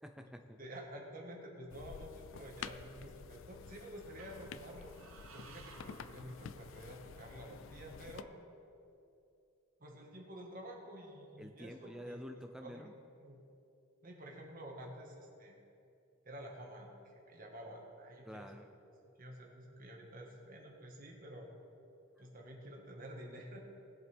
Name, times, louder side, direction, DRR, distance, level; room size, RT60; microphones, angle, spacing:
voice 1, 0.0-0.6 11.4-12.9 18.2-18.7, equal, 5° right, 5 dB, 0.5 m, -49 dB
voice 2, 0.6-4.9 5.3-8.3 9.8-12.2 12.6-12.9 13.2-13.4 14.0-15.6 16.2-18.5 19.2-21.5 22.2-23.7, equal, 40° right, 0 dB, 1.6 m, -50 dB
sound 1, 1.7-8.2, left 6 dB, 60° left, 0.4 m, -50 dB
sound 2, 2.5-3.3 4.2-7.1, right 5 dB, 65° right, 0.9 m, -60 dB
19.0 x 8.0 x 3.5 m, 2.7 s
head